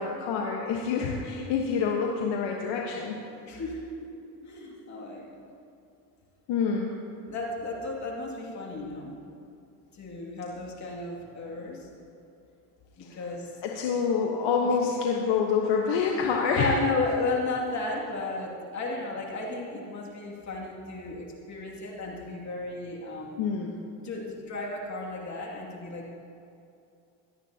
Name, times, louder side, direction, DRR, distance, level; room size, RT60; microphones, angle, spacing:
voice 1, 0.0-3.2 6.5-6.9 13.0-13.2 13.6-16.8 23.4-23.7, left 5 dB, 55° left, 0 dB, 1.5 m, -27 dB
voice 2, 3.4-4.1 4.4-5.5 7.3-9.1 9.9-11.9 13.0-13.6 14.6-14.9 16.6-23.5 24.0-26.1, left 3 dB, 35° left, -2 dB, 2.6 m, -34 dB
18.0 x 12.5 x 2.9 m, 2.6 s
supercardioid pair, 95°, 50 cm